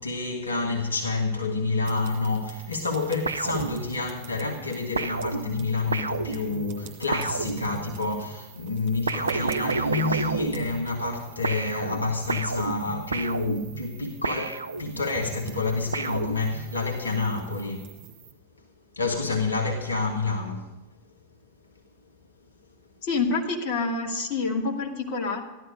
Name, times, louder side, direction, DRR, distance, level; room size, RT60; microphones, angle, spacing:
voice 1, 0.0-17.9 18.9-20.7, left 3 dB, 75° left, 1.5 m, -28 dB
sound 1, 1.8-18.3, right 6 dB, 45° right, 2.4 m, -45 dB
sound 2, 3.3-4.3 5.0-8.1 9.1-11.2 11.4-15.2 15.9-16.9, right 4 dB, 75° right, 0.6 m, -31 dB
voice 2, 23.0-25.4, left 4 dB, 45° left, 2.4 m, -27 dB
15.0 x 12.0 x 5.3 m
figure-of-eight pair, 90°, 0 cm